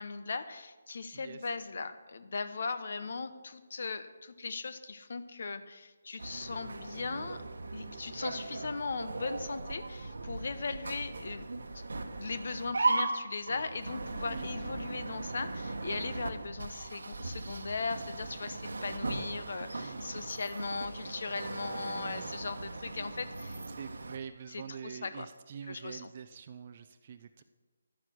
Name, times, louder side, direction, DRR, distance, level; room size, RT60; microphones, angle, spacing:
voice 1, 0.0-7.4 7.7-11.5 12.2-23.6 24.5-25.3 25.7-26.1, left 4 dB, 60° left, 11 dB, 1.0 m, -38 dB
voice 2, 1.1-1.5 14.3-14.5 19.8-20.1 23.7-27.4, right 7 dB, 35° right, 8 dB, 0.6 m, -45 dB
sound 1, 6.2-24.2, right 3 dB, 80° right, 1.2 m, -38 dB
11.5 x 9.6 x 6.2 m, 1.2 s
hypercardioid pair, 165°, 0 cm